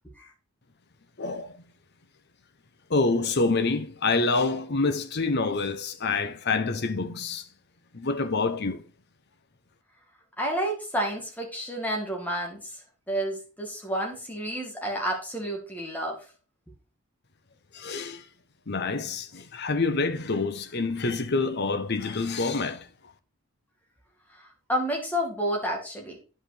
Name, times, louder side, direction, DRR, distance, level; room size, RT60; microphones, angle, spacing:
voice 1, 1.2-1.6 2.9-7.5 7.9-8.8 17.7-18.3 18.7-22.9, left 3 dB, 50° left, 0.8 m, -27 dB
voice 2, 10.4-12.6 13.1-16.2 24.7-26.2, equal, 10° left, 2.3 m, -30 dB
9.7 x 5.6 x 5.0 m
head